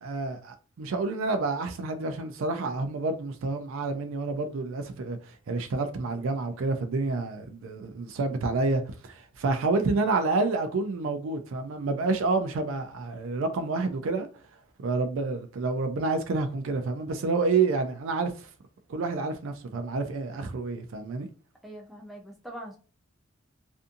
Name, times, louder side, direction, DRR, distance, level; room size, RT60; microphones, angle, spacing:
voice 1, 0.0-14.3 14.8-18.5 18.9-21.3, right 3 dB, 65° right, 0.4 m, -29 dB
voice 2, 21.6-22.8, right 1 dB, ahead, 0.5 m, -42 dB
2.6 x 2.5 x 2.5 m
head